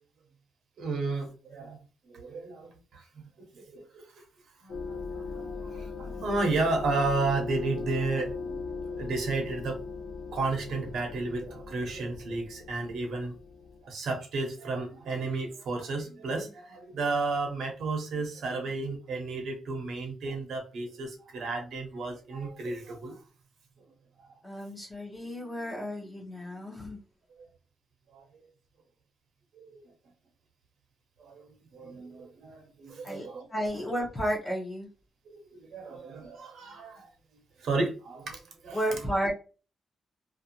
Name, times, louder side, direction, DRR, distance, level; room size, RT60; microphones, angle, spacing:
voice 1, 0.8-1.8 2.1-4.2 4.6-9.8 10.3-13.4 13.8-23.2 23.8-23.9 24.2-24.4 27.4-27.5 28.1-28.5 29.5-29.9 31.2-31.5 31.7-33.5 35.2-37.1 37.6-38.8, right 3 dB, 60° right, 0.8 m, -33 dB
sound 1, 4.7-13.8, left 4 dB, 80° left, 0.4 m, -39 dB
voice 2, 24.4-27.0 33.0-34.9 38.7-39.3, equal, 15° left, 0.7 m, -32 dB
2.5 x 2.3 x 2.7 m
wide cardioid pair, 170°, 0 cm